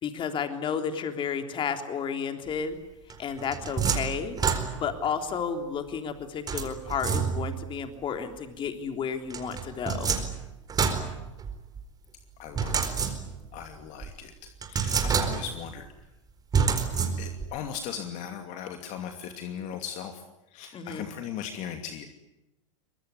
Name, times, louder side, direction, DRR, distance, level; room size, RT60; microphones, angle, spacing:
voice 1, 0.0-2.8 3.2-4.4 4.7-10.1 20.7-21.1, left 6 dB, 30° left, 7 dB, 3.5 m, -32 dB
sound 1, 3.1-5.1 6.5-7.7 9.3-11.8 12.6-13.6 14.0-14.1 14.6-15.7 16.5-17.5, right 6 dB, 25° right, 4.5 m, -28 dB
voice 2, 12.4-13.0 13.5-15.9 17.2-20.2 20.5-22.1, left 8 dB, 45° left, 6 dB, 2.6 m, -38 dB
24.0 x 21.5 x 9.9 m, 0.94 s
hypercardioid pair, 100°, 16 cm